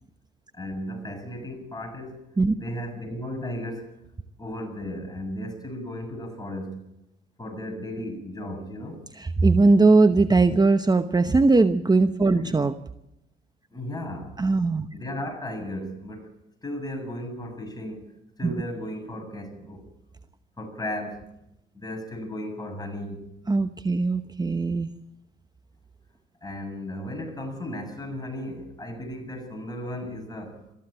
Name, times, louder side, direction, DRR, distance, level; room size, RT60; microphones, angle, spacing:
voice 1, 0.5-2.2 2.5-3.9 4.4-6.8 7.4-9.0 12.3-12.6 13.7-14.3 14.9-16.3 16.6-18.1 18.4-19.9 20.6-21.2 21.7-23.3 26.4-30.6, left 1 dB, 20° left, 7.5 m, -35 dB
voice 2, 9.2-12.7 14.4-14.9 18.4-18.5 23.5-24.9, right 3 dB, 20° right, 1.0 m, -20 dB
22.0 x 14.5 x 8.9 m
cardioid pair, 90°, 20 cm